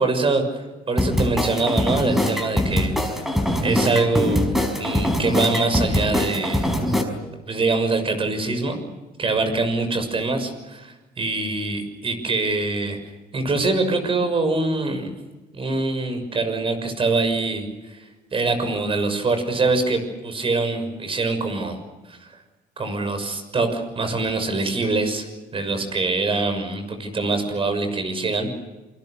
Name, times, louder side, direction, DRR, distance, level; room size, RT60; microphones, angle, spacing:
voice 1, 0.0-3.2 3.6-4.5 4.8-6.7 7.5-8.8 9.2-13.0 13.3-15.1 15.5-21.8 22.1-22.3 22.8-28.5, right 3 dB, 30° right, 7 dB, 6.5 m, -24 dB
sound 1, 1.0-7.0, left 1 dB, ahead, 5.0 m, -22 dB
27.5 x 25.5 x 6.7 m, 1.1 s
cardioid pair, 110°, 17 cm